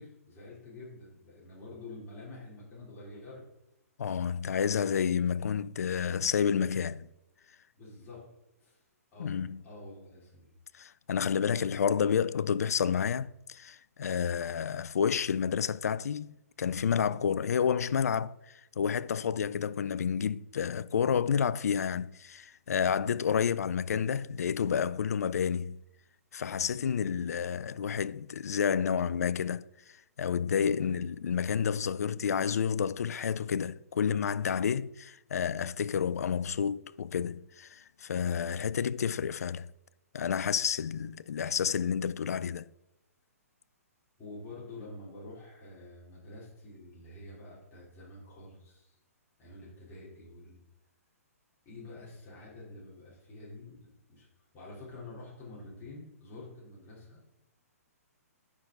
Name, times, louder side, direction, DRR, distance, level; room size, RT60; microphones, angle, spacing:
voice 1, 0.0-3.4 7.7-8.3 8.6-8.8 9.1-10.6 30.8-31.1 44.2-48.9 49.4-50.6 51.7-54.3 54.5-57.2, left 2 dB, 25° left, 3.5 m, -48 dB
voice 2, 4.0-7.1 9.2-9.6 10.7-25.8 26.3-29.6 30.2-39.7 40.1-42.7, left 7 dB, 75° left, 0.4 m, -30 dB
9.7 x 6.0 x 3.9 m
hypercardioid pair, 130°, 8 cm